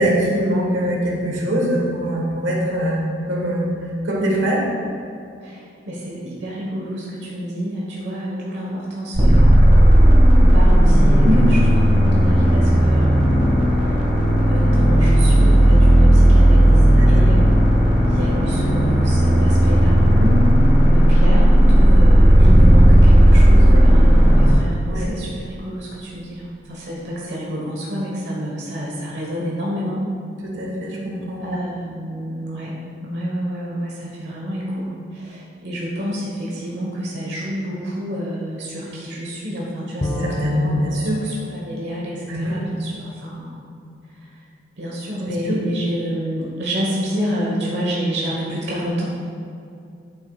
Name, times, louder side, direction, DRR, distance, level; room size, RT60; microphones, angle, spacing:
voice 1, 0.0-3.0 3.3-3.7 4.0-4.6 11.2-11.5 16.9-17.3 20.2-20.3 23.6-23.8 24.8-25.2 30.4-31.4 40.2-41.2 42.3-42.6 45.2-45.6, equal, 80° right, -2 dB, 1.3 m, -23 dB
voice 2, 5.9-11.6 11.9-13.5 14.5-20.0 20.9-30.0 31.4-32.7 33.0-43.6 44.8-49.0, equal, 65° right, -4 dB, 1.1 m, -28 dB
sound 1, 9.1-24.5, equal, 40° right, 1.7 m, -13 dB
Bowed string instrument, 40.0-43.7, left 1 dB, 20° left, 0.4 m, -32 dB
9.0 x 7.2 x 2.3 m, 2.5 s
head